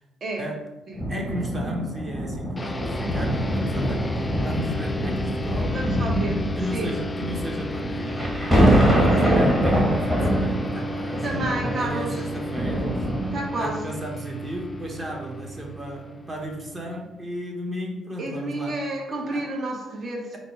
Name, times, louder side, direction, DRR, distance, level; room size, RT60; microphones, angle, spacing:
sound 1, 0.9-13.7 14.4-14.6, equal, 15° right, 1.3 m, -24 dB
voice 1, 1.1-5.8 6.1-6.2 6.6-8.6 8.9-13.1 13.6-18.8 19.3-19.5, right 1 dB, 30° right, 1 dB, 1.0 m, -34 dB
sound 2, 2.6-17.4, left 1 dB, 25° left, 0.3 m, -34 dB
voice 2, 5.7-6.3 6.7-6.9 9.2-9.4 11.2-12.2 13.3-13.8 18.2-20.4, right 2 dB, 50° right, 0 dB, 0.8 m, -30 dB
4.1 x 2.1 x 4.5 m, 1.0 s
supercardioid pair, 65°, 0 cm